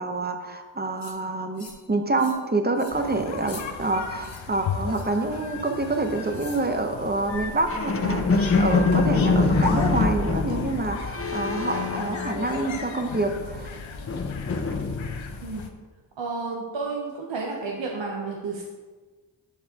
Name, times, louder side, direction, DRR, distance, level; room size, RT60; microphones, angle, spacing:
voice 1, 0.0-13.8, right 2 dB, 20° right, 5 dB, 0.8 m, -27 dB
sound 1, 1.0-1.2 1.6-1.9 2.2-2.4 2.7-3.0 3.4-3.6 4.2-4.4 4.9-5.2 6.3-6.7, left 3 dB, 60° left, 1.4 m, -45 dB
sound 2, 2.9-15.7, left 6 dB, 80° left, 0.7 m, -36 dB
sound 3, 7.3-12.9 13.2-15.4, left 3 dB, 30° left, 0.6 m, -25 dB
voice 2, 16.2-18.6, right 4 dB, 70° right, -1 dB, 0.9 m, -31 dB
6.7 x 6.7 x 2.9 m, 1.4 s
cardioid pair, 50°, 46 cm